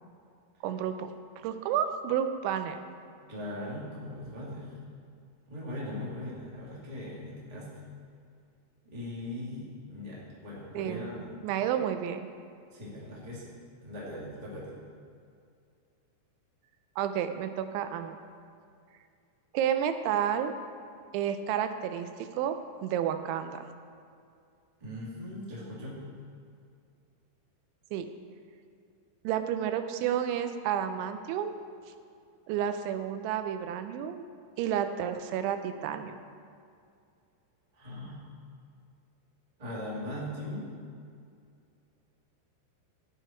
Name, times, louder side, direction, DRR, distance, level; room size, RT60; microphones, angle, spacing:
voice 1, 0.6-1.1 1.4-2.8 10.7-11.1 11.4-12.2 17.0-18.2 19.5-20.5 21.1-23.6 27.9-28.1 29.2-31.5 32.5-34.2 34.6-36.2, right 9 dB, 85° right, 8 dB, 3.0 m, -31 dB
voice 2, 3.3-4.8 5.5-7.7 8.8-11.3 12.7-13.5 13.8-14.8 24.8-26.0 37.7-38.3 39.6-40.7, left 1 dB, 15° right, -6 dB, 1.2 m, -39 dB
13.5 x 9.1 x 4.5 m, 2.3 s
omnidirectional pair, 5.3 m